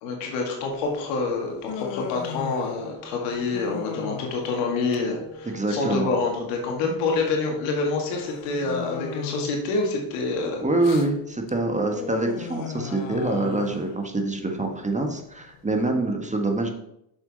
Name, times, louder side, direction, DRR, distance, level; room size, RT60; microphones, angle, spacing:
voice 1, 0.0-10.6, left 3 dB, 80° left, 1 dB, 2.1 m, -27 dB
Human voice, 0.7-15.9, left 9 dB, 65° left, 1.0 m, -38 dB
Wind instrument woodwind instrument, 2.0-6.5, equal, 60° right, 2.6 m, -45 dB
voice 2, 5.5-6.1 10.6-16.7, right 2 dB, 15° right, 4 dB, 1.6 m, -25 dB
6.9 x 6.6 x 4.1 m, 0.79 s
supercardioid pair, 75°, 48 cm